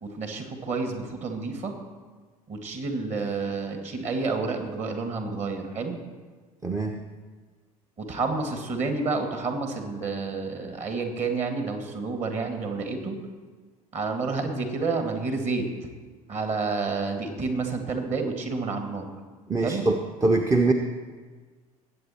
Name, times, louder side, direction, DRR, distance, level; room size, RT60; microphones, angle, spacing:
voice 1, 0.0-1.7 2.5-6.0 8.0-13.2 13.9-15.7 16.3-19.1 19.6-19.8, right 4 dB, 35° right, 5 dB, 2.0 m, -29 dB
voice 2, 6.6-7.0 19.5-20.7, right 2 dB, 15° right, 3 dB, 0.8 m, -23 dB
20.0 x 8.2 x 4.4 m, 1.4 s
figure-of-eight pair, 65°, 19 cm